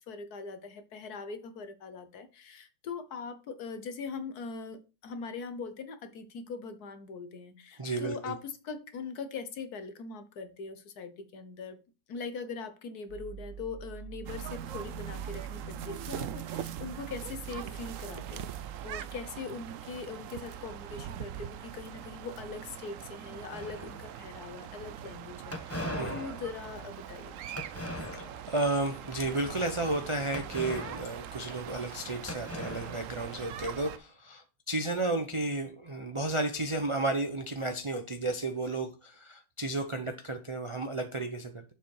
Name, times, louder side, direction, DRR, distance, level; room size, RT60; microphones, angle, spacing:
voice 1, 0.1-11.8 12.1-18.5 18.8-27.6, left 4 dB, 60° left, 1.4 m, -41 dB
voice 2, 7.8-8.3 25.9-26.3 28.1-41.6, right 2 dB, 40° right, 0.4 m, -33 dB
sound 1, 13.1-19.3, right 8 dB, 90° right, 2.3 m, -45 dB
sound 2, 14.2-34.0, right 10 dB, 70° right, 0.7 m, -42 dB
sound 3, 23.5-24.3 25.5-28.6 29.0-29.3 30.3-32.0 32.3-33.6, left 1 dB, 10° left, 0.8 m, -40 dB
7.2 x 5.5 x 4.7 m
omnidirectional pair, 1.9 m